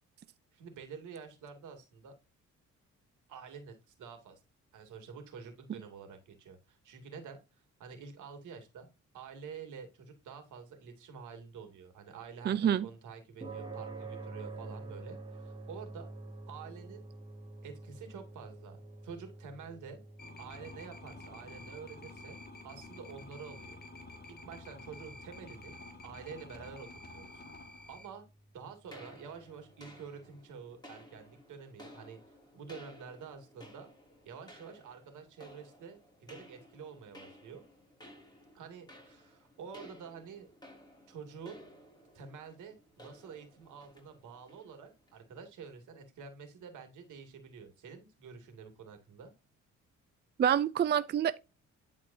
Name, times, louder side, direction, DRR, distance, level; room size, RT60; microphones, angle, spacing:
voice 1, 0.5-2.1 3.3-4.4 4.7-8.9 9.1-16.1 16.5-17.0 17.6-20.0 20.4-22.4 22.6-23.8 24.4-25.7 26.0-27.4 27.9-28.2 28.5-32.2 32.5-33.9 34.2-37.6 38.5-40.5 41.1-41.6 42.1-49.3, right 6 dB, 80° right, 2.6 m, -48 dB
voice 2, 12.5-12.9 50.4-51.4, right 9 dB, 35° right, 0.4 m, -27 dB
sound 1, 13.4-29.9, right 3 dB, 15° right, 2.2 m, -49 dB
sound 2, 20.2-28.1, left 2 dB, 30° left, 2.1 m, -50 dB
sound 3, 28.9-45.3, equal, 15° left, 4.9 m, -56 dB
11.5 x 4.4 x 2.7 m
cardioid pair, 90°, 30 cm